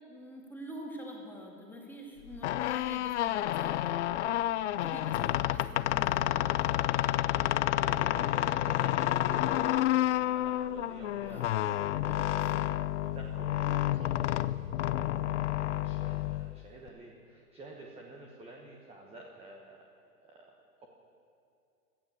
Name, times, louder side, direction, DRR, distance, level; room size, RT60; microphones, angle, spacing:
voice 1, 0.1-4.3 4.8-6.5 11.2-11.4 12.0-12.5, equal, 5° left, -1 dB, 2.3 m, -46 dB
sound 1, 2.3-16.9, left 13 dB, 50° left, 0.5 m, -30 dB
voice 2, 7.3-11.6 12.1-19.9 20.2-20.9, right 2 dB, 10° right, 0 dB, 1.2 m, -50 dB
17.5 x 12.0 x 6.8 m, 2.6 s
hypercardioid pair, 130°, 48 cm